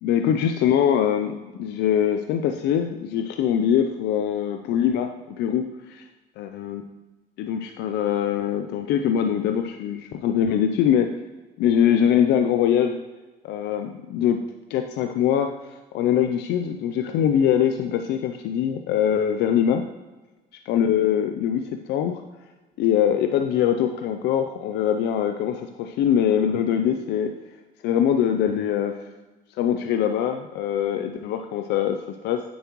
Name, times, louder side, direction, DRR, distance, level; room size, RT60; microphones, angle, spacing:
voice 1, 0.0-6.0 6.4-6.8 7.4-11.1 11.6-13.0 13.4-14.4 14.7-19.8 20.7-22.2 22.8-27.3 27.8-29.1 29.6-32.4, left 9 dB, 75° left, 7 dB, 0.5 m, -23 dB
9.4 x 7.0 x 3.0 m, 1.2 s
cardioid pair, 105°, 18 cm